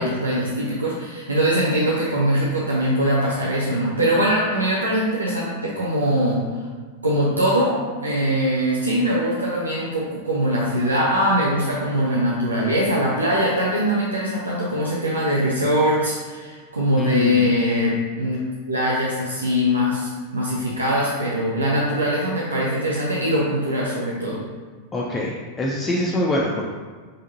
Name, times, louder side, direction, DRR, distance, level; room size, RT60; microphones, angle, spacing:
voice 1, 0.0-6.5 7.0-18.4 18.7-24.4, equal, 80° right, -5 dB, 0.7 m, -22 dB
voice 2, 17.0-17.5 24.9-26.7, left 1 dB, 15° left, -3 dB, 0.5 m, -24 dB
5.3 x 3.6 x 2.7 m, 1.5 s
figure-of-eight pair, 90°, 0 cm